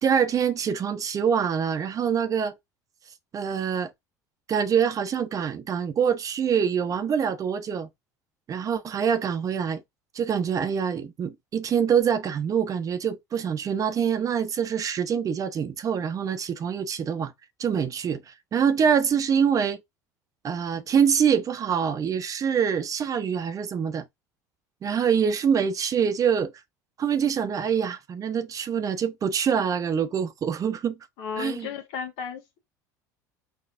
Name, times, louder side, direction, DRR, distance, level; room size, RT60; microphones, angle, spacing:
voice 1, 0.0-2.6 3.3-3.9 4.5-7.9 8.5-9.8 10.1-17.3 17.6-19.8 20.4-24.1 24.8-26.5 27.0-30.9 31.4-31.7, right 7 dB, 35° right, 0.8 m, -25 dB
voice 2, 31.2-32.6, left 7 dB, 65° left, 1.4 m, -34 dB
4.6 x 4.0 x 2.5 m
hypercardioid pair, 75°, 9 cm